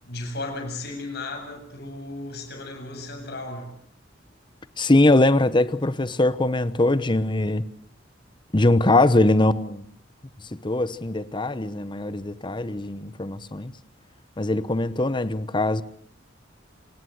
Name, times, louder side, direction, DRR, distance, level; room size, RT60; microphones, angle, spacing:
voice 1, 0.0-3.7, left 2 dB, 60° left, 7.8 m, -35 dB
voice 2, 4.8-7.6 8.5-9.8 10.6-13.7 14.4-15.8, left 2 dB, 25° left, 1.0 m, -21 dB
28.5 x 18.5 x 8.0 m
head